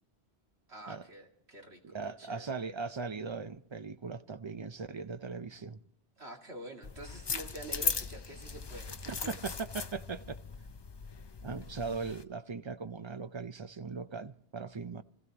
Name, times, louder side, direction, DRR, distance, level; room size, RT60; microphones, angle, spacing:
voice 1, 0.7-2.4 6.2-9.4, right 1 dB, 80° right, 2.5 m, -47 dB
voice 2, 1.8-5.8 9.1-10.4 11.4-15.0, right 4 dB, 35° right, 0.5 m, -39 dB
sound 1, 6.8-12.2, left 5 dB, 35° left, 0.4 m, -38 dB
26.0 x 15.5 x 2.9 m
omnidirectional pair, 1.1 m